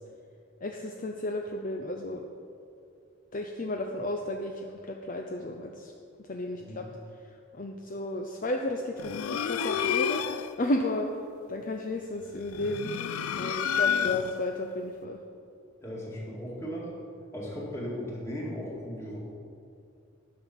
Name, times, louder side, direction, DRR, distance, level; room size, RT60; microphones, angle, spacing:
voice 1, 0.6-2.2 3.3-5.9 6.2-6.9 7.5-10.2 10.6-11.1 11.5-12.9 13.3-15.2, left 1 dB, 40° left, 3 dB, 0.5 m, -33 dB
sound 1, 9.0-10.6 12.4-14.5, left 8 dB, 90° left, 0.4 m, -29 dB
voice 2, 15.8-16.9 17.3-19.2, equal, 15° left, -5 dB, 2.1 m, -37 dB
11.0 x 5.9 x 7.1 m, 2.4 s
head